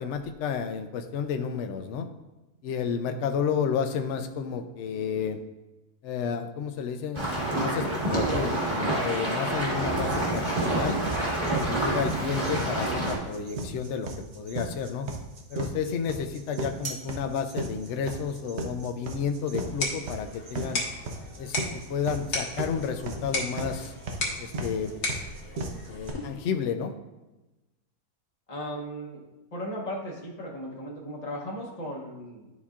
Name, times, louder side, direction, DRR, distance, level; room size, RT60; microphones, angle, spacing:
voice 1, 0.0-2.1 2.6-5.4 6.0-11.0 11.6-15.1 15.5-20.8 21.4-23.9 24.4-24.9 25.9-26.9, left 6 dB, 65° left, 7 dB, 0.8 m, -31 dB
sound 1, 7.1-13.2, right 1 dB, 20° right, 1.3 m, -28 dB
sound 2, 10.1-26.1, right 2 dB, 55° right, 0.9 m, -35 dB
sound 3, 19.5-26.5, left 2 dB, 90° left, 1.9 m, -35 dB
voice 2, 28.5-32.5, equal, 30° left, -2 dB, 0.9 m, -36 dB
11.0 x 4.2 x 2.4 m, 1.1 s
omnidirectional pair, 1.6 m